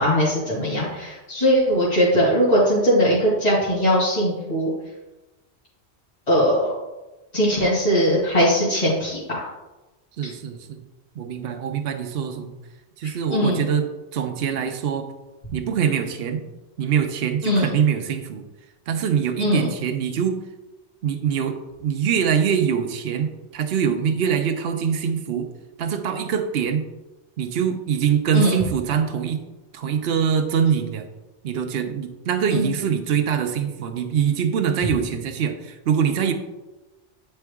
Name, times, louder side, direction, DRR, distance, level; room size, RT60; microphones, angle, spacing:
voice 1, 0.0-4.7 6.3-6.7 7.3-9.5 13.0-13.6 17.4-17.7 19.4-19.7 28.3-28.6 32.5-32.7, equal, 35° left, -8 dB, 2.1 m, -20 dB
voice 2, 10.2-10.8 11.1-12.6 13.0-15.1 15.5-16.4 16.8-18.4 18.9-20.4 21.0-25.5 25.8-26.9 27.4-29.4 29.7-31.1 31.4-36.3, right 7 dB, 65° right, 6 dB, 0.9 m, -23 dB
8.8 x 4.5 x 3.5 m, 1.1 s
omnidirectional pair, 1.1 m